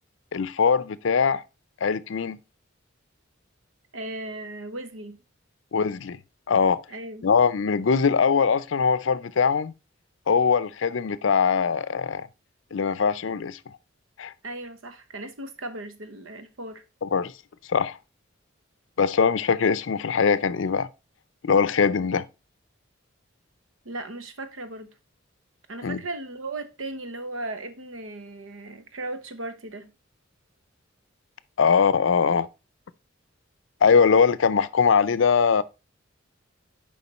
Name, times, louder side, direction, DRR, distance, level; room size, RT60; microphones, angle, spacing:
voice 1, 0.3-1.4 1.8-2.4 5.7-6.2 6.5-6.8 7.2-9.7 10.3-12.3 12.7-13.7 14.2-14.3 17.0-17.3 17.7-18.0 19.0-20.9 21.4-22.2 25.8-26.0 31.6-32.5 33.8-35.6, left 6 dB, 65° left, 0.5 m, -21 dB
voice 2, 3.9-5.2 6.9-7.3 14.4-16.8 23.8-24.9 25.7-29.9, right 2 dB, 75° right, 1.0 m, -36 dB
6.9 x 5.0 x 4.2 m
head